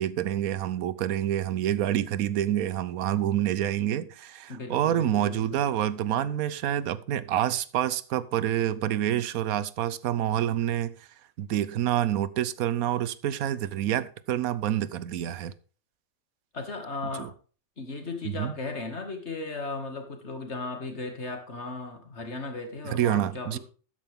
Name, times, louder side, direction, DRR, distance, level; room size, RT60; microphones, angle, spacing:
voice 1, 0.0-10.9 11.4-15.5 17.1-17.3 18.2-18.5 22.8-23.6, right 11 dB, 85° right, 1.1 m, -27 dB
voice 2, 4.5-5.6 16.5-17.3 17.8-23.6, left 3 dB, 50° left, 2.3 m, -36 dB
13.0 x 9.8 x 3.6 m
omnidirectional pair, 1.4 m